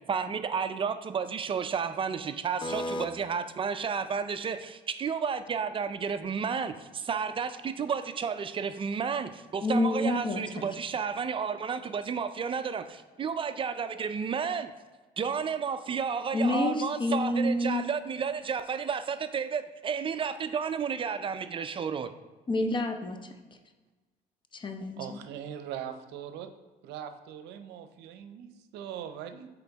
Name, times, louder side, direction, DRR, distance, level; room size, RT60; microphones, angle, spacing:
voice 1, 0.1-14.7 15.2-22.1, right 6 dB, 30° right, 11 dB, 0.4 m, -32 dB
voice 2, 2.6-3.1 9.6-10.4 16.3-17.9 22.5-23.4 24.5-25.2, left 1 dB, 30° left, 7 dB, 0.6 m, -28 dB
voice 3, 25.0-26.5 26.8-29.5, right 9 dB, 85° right, 9 dB, 0.6 m, -41 dB
6.8 x 4.2 x 3.4 m, 1.2 s
cardioid pair, 110°, 17 cm